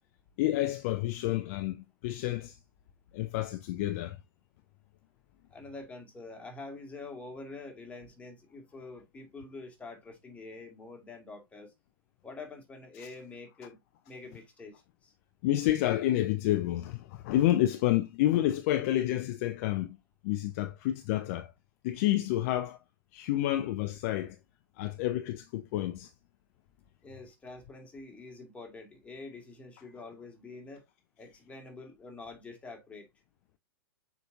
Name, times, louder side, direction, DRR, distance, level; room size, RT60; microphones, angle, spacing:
voice 1, 0.4-2.6 3.1-4.2 13.0-13.1 15.4-20.0 20.2-21.5 21.8-22.8 23.1-24.4 24.8-26.1, left 14 dB, 40° left, 0.6 m, -29 dB
voice 2, 5.5-11.7 12.2-13.8 14.1-15.1 27.0-30.8 31.2-33.1, left 3 dB, 10° left, 2.2 m, -46 dB
6.8 x 5.3 x 2.6 m
figure-of-eight pair, 110°, 12 cm